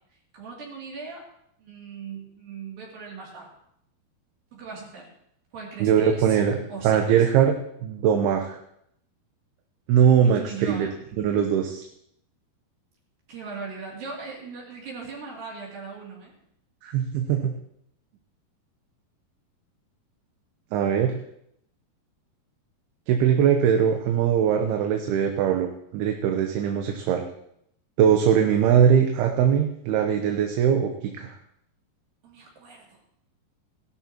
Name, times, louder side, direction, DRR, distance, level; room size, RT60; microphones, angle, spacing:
voice 1, 0.3-1.3 1.6-3.5 4.5-5.1 5.5-6.4 6.7-7.1 10.2-11.0 13.3-16.3 32.2-33.0, right 5 dB, 65° right, -3 dB, 4.5 m, -39 dB
voice 2, 5.8-8.6 9.9-10.9 11.2-11.8 16.8-17.5 20.7-21.2 23.1-25.7 25.9-27.3 28.0-31.4, right 8 dB, 80° right, 4 dB, 2.8 m, -21 dB
16.5 x 12.5 x 3.0 m, 0.73 s
omnidirectional pair, 4.5 m